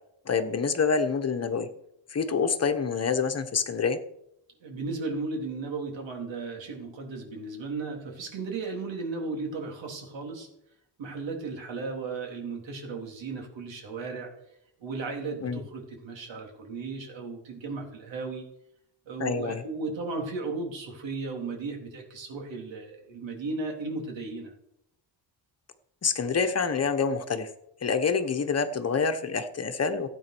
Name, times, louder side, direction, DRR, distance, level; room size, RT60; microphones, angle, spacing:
voice 1, 0.2-1.7 2.1-4.0 15.4-15.6 19.2-19.6 26.0-27.5 27.8-30.1, left 5 dB, 35° left, 7 dB, 1.2 m, -27 dB
voice 2, 4.6-10.5 11.0-14.3 14.8-18.5 19.1-24.5, right 3 dB, 80° right, 1 dB, 4.0 m, -35 dB
16.0 x 8.7 x 6.2 m, 0.78 s
wide cardioid pair, 165°, 44 cm